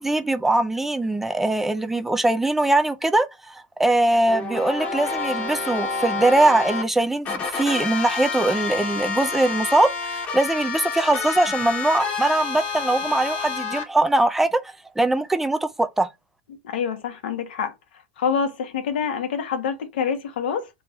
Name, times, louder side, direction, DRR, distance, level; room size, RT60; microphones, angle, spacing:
voice 1, 0.0-16.1, right 2 dB, 5° right, 0.4 m, -21 dB
sound 1, 4.3-6.8 7.3-13.8, left 5 dB, 30° left, 1.1 m, -28 dB
voice 2, 16.6-17.7 18.2-20.7, left 7 dB, 85° left, 1.2 m, -26 dB
3.4 x 3.0 x 4.4 m
supercardioid pair, 150°, 5 cm